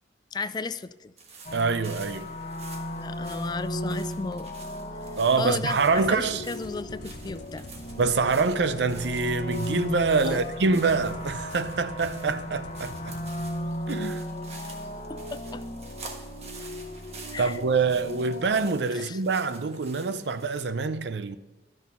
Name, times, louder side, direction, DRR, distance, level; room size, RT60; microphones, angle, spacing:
voice 1, 0.3-1.1 2.9-4.5 5.4-7.7 10.2-10.4 14.6-14.7 15.1-15.6 17.3-17.6 18.9-19.2, left 4 dB, 25° left, 0.3 m, -34 dB
sound 1, 1.2-20.6, right 4 dB, 40° right, 1.4 m, -49 dB
sound 2, 1.4-18.7, equal, 40° left, 1.3 m, -36 dB
voice 2, 1.5-2.3 5.2-6.4 8.0-13.1 13.9-14.2 17.4-21.4, right 4 dB, 75° right, 0.6 m, -25 dB
sound 3, 5.9-13.7, left 2 dB, 80° left, 0.6 m, -46 dB
12.5 x 6.2 x 5.6 m
head